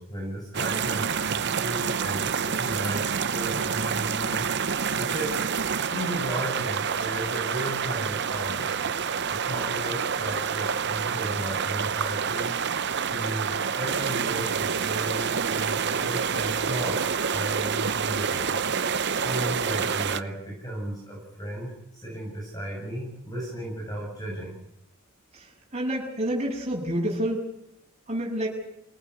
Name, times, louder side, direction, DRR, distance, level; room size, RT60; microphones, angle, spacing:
voice 1, 0.0-4.5 4.9-5.3 5.9-8.9 9.3-12.5 13.1-18.6 19.2-24.5, right 1 dB, 15° left, -3 dB, 7.5 m, -35 dB
sound 1, 0.5-20.2, right 6 dB, 50° right, 0.8 m, -28 dB
voice 2, 25.7-27.5 28.1-28.5, right 1 dB, 30° right, -1 dB, 7.8 m, -28 dB
25.5 x 19.0 x 8.3 m, 0.83 s
head